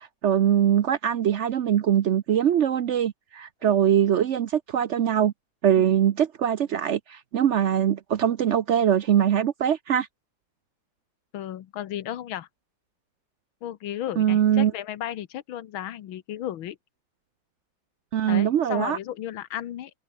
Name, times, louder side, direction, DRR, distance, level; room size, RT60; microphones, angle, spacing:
voice 1, 0.0-5.3 5.6-10.1 14.2-14.7 18.1-19.0, right 9 dB, 85° right, 0.6 m, -22 dB
voice 2, 11.3-12.5 13.6-16.8 18.3-19.9, left 11 dB, 80° left, 1.8 m, -34 dB
omnidirectional pair, 2.2 m